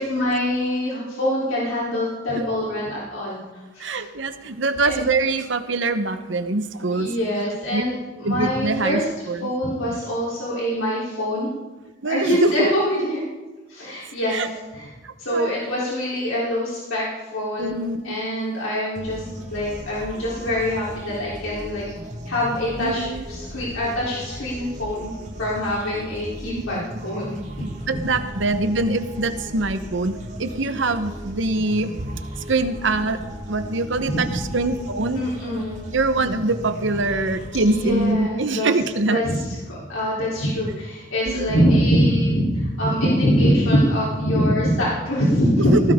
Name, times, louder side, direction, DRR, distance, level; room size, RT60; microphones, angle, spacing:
voice 1, 0.0-4.0 4.8-5.0 6.9-9.1 9.4-11.5 12.0-13.2 13.7-14.9 15.2-21.8 22.3-25.1 25.4-27.4 34.1-34.4 35.2-35.8 37.7-38.7 39.1-45.7, equal, 90° left, -6 dB, 3.5 m, -24 dB
voice 2, 3.8-7.4 7.7-7.8 8.2-9.0 9.3-9.5 12.0-12.5 14.3-14.5 15.0-15.5 17.6-18.1 22.8-23.2 27.6-31.9 32.5-33.2 33.5-34.3 34.5-35.3 35.6-35.7 35.9-39.2 41.3-41.5 45.7-45.8, right 2 dB, 70° right, 9 dB, 1.0 m, -24 dB
sound 1, 18.9-38.1, equal, 35° right, 2.5 m, -36 dB
18.5 x 16.0 x 3.7 m, 1.2 s
head